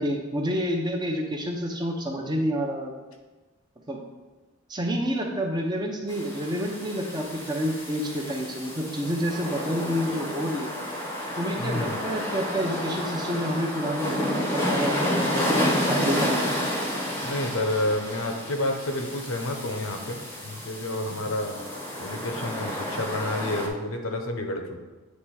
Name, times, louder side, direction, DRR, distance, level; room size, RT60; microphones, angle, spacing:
voice 1, 0.0-2.9 3.9-4.0 4.7-10.7 11.4-16.5, equal, 20° right, 1 dB, 0.7 m, -29 dB
sound 1, 6.1-23.7, equal, 10° left, 0.8 m, -30 dB
voice 2, 11.6-12.0 17.2-20.2 20.4-21.6 22.0-24.8, left 1 dB, 70° left, 5 dB, 0.8 m, -29 dB
8.3 x 3.3 x 4.7 m, 1.2 s
head